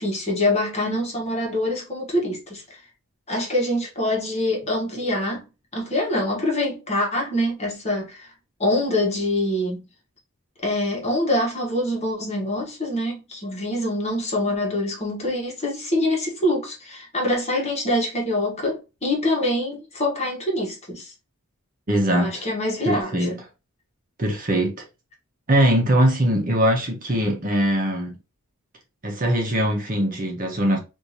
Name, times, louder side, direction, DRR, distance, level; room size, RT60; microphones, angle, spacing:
voice 1, 0.0-2.8 3.3-5.4 5.7-8.3 8.6-9.9 10.6-21.1 22.2-23.4, left 1 dB, 30° left, 1.3 m, -25 dB
voice 2, 21.9-22.4 22.8-23.3 24.2-24.8 25.5-28.1 29.0-30.8, right 1 dB, 40° right, 1.0 m, -21 dB
3.5 x 2.7 x 2.9 m
head